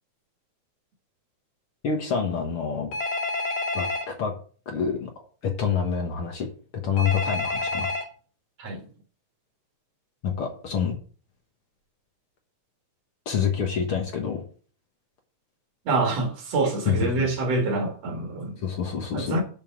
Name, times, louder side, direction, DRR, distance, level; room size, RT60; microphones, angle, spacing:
voice 1, 1.8-2.9 3.7-4.3 4.7-5.1 5.4-6.5 6.8-7.9 10.2-11.0 13.3-14.4 16.9-17.3 18.6-19.4, left 6 dB, 55° left, 2.0 m, -27 dB
Telephone, 2.9-4.0 7.0-8.0, left 2 dB, 75° left, 3.6 m, -28 dB
voice 2, 15.9-18.6 19.1-19.4, right 3 dB, 60° right, 2.8 m, -26 dB
6.9 x 5.5 x 7.3 m
omnidirectional pair, 3.3 m